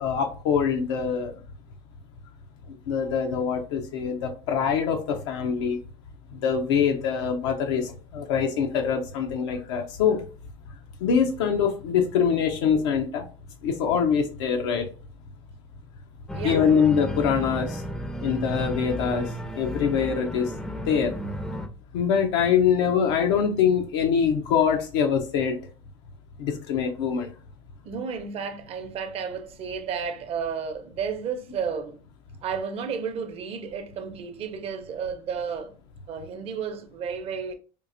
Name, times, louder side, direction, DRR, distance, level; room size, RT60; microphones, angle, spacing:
voice 1, 0.0-1.4 2.9-5.8 6.3-10.2 11.0-13.3 13.6-14.9 16.4-17.8 18.2-19.3 19.6-20.5 20.8-21.2 21.9-25.6 26.4-27.3, left 7 dB, 90° left, 0.6 m, -24 dB
Organ, 16.3-21.7, equal, 5° left, 0.4 m, -33 dB
voice 2, 16.3-16.7 27.8-32.0 32.4-35.7 36.1-37.5, right 6 dB, 45° right, 0.7 m, -32 dB
4.5 x 2.4 x 2.5 m
supercardioid pair, 120°, 14 cm